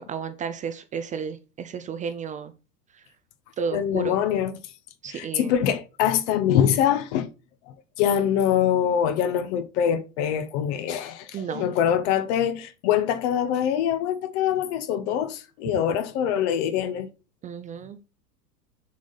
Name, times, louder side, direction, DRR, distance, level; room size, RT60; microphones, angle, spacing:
voice 1, 0.0-2.5 3.6-4.1 5.0-5.5 11.3-11.7 17.4-18.0, right 6 dB, 15° right, 0.5 m, -32 dB
voice 2, 3.7-4.5 5.1-7.3 8.0-17.1, left 9 dB, 45° left, 1.0 m, -24 dB
7.2 x 6.2 x 4.0 m
hypercardioid pair, 100°, 49 cm